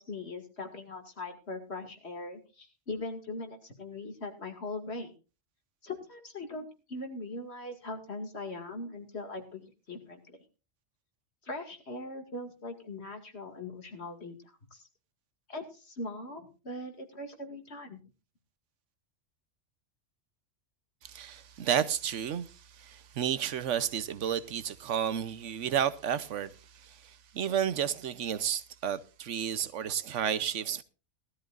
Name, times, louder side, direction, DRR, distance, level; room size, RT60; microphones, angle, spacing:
voice 1, 0.0-5.1 5.8-10.4 11.4-14.4 14.7-14.8 15.5-18.0, left 2 dB, 65° left, 2.5 m, -40 dB
voice 2, 21.0-26.5 26.8-30.8, right 9 dB, 90° right, 1.1 m, -32 dB
18.5 x 13.0 x 2.5 m
omnidirectional pair, 1.2 m